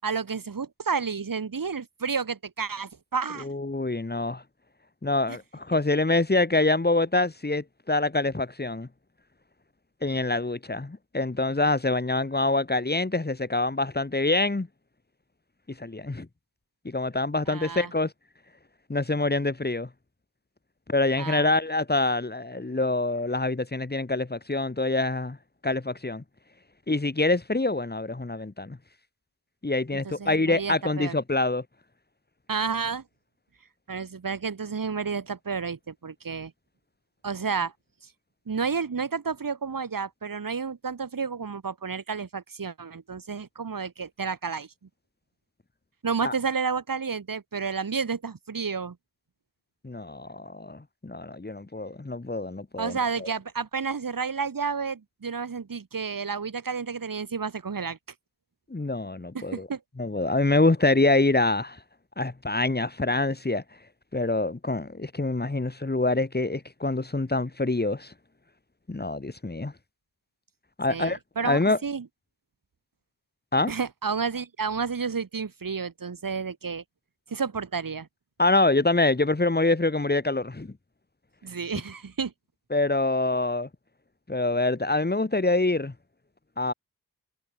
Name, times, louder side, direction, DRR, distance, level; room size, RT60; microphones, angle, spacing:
voice 1, 0.0-3.5 5.3-5.4 17.5-17.9 21.2-21.5 29.9-31.2 32.5-33.0 33.9-36.5 37.2-37.7 38.5-44.7 46.0-49.0 52.8-58.0 59.3-59.8 70.9-72.1 73.7-76.8 77.3-78.1 81.4-82.3, right 5 dB, 60° right, 7.5 m, -31 dB
voice 2, 3.4-4.4 5.0-8.9 10.0-14.7 15.8-16.3 16.9-18.1 18.9-19.9 20.9-25.4 25.6-26.2 26.9-28.8 29.6-31.6 46.2-46.3 49.8-53.3 58.7-59.7 60.0-61.8 62.2-63.6 64.1-68.1 68.9-69.7 70.8-71.8 73.5-73.7 78.4-80.7 82.7-83.7 84.3-85.9 86.6-86.7, left 2 dB, 25° left, 3.6 m, -25 dB
cardioid pair, 55°, 38 cm